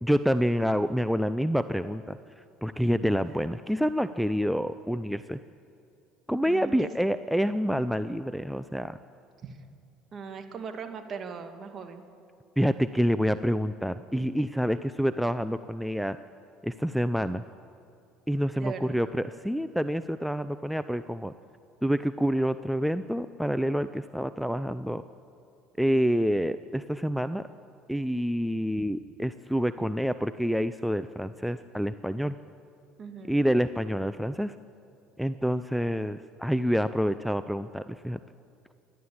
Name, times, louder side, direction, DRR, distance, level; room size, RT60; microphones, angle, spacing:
voice 1, 0.0-5.4 6.3-9.0 12.6-16.2 16.6-17.4 18.3-21.3 21.8-25.0 25.8-27.4 27.9-32.4 33.3-34.5 35.2-38.2, equal, ahead, 12 dB, 0.6 m, -27 dB
voice 2, 6.4-6.9 9.4-9.6 10.1-12.0 18.6-18.9 28.8-28.9 33.0-33.4, right 6 dB, 45° right, 6 dB, 2.3 m, -39 dB
27.5 x 11.5 x 8.7 m, 2.5 s
hypercardioid pair, 70°, 0 cm